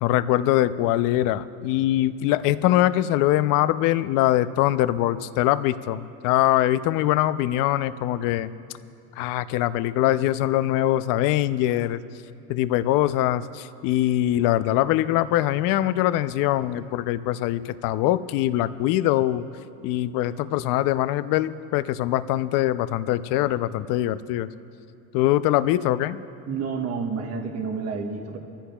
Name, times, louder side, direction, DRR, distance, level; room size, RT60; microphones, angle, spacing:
voice 1, 0.0-8.5 9.2-12.0 12.5-19.4 19.8-24.5 25.1-26.2, left 14 dB, 60° left, 13 dB, 0.6 m, -23 dB
voice 2, 26.5-28.4, right 5 dB, 40° right, 3 dB, 1.3 m, -29 dB
24.5 x 14.5 x 2.3 m, 2.9 s
supercardioid pair, 125°, 37 cm